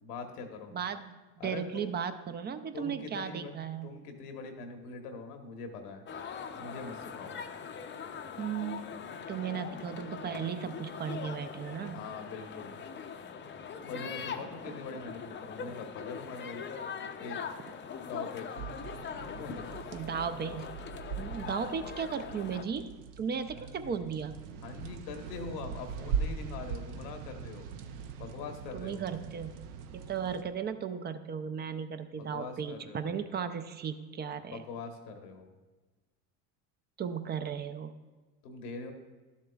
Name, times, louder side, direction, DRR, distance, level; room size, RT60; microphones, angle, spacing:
voice 1, 0.0-0.7 1.4-1.9 2.7-6.0 6.6-7.4 11.9-12.8 13.8-16.6 17.2-17.4 18.0-18.5 19.4-19.8 23.5-24.1 24.6-27.7 28.2-29.0 32.2-33.3 34.4-35.5 38.4-38.9, left 4 dB, 85° left, 5 dB, 1.3 m, -43 dB
voice 2, 0.7-3.9 8.4-9.0 9.3-12.0 14.7-14.8 19.9-20.7 21.2-24.4 28.7-29.5 29.9-34.6 37.0-37.9, right 7 dB, 25° right, 10 dB, 0.4 m, -36 dB
sound 1, 6.1-22.6, left 6 dB, 25° left, 0.5 m, -42 dB
sound 2, 18.6-30.4, right 6 dB, 75° right, 0.8 m, -41 dB
12.0 x 7.2 x 2.3 m, 1.3 s
supercardioid pair, 90°, 45 cm